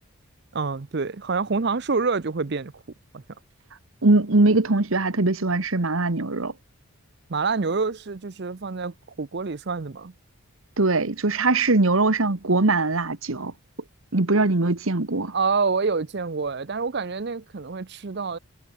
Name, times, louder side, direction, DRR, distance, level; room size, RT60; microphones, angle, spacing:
voice 1, 0.5-2.7 3.1-3.2 7.3-10.1 15.3-18.4, right 4 dB, 50° right, 0.6 m, -27 dB
voice 2, 4.0-6.5 10.8-13.5 14.1-15.3, right 2 dB, 70° right, 1.4 m, -21 dB
head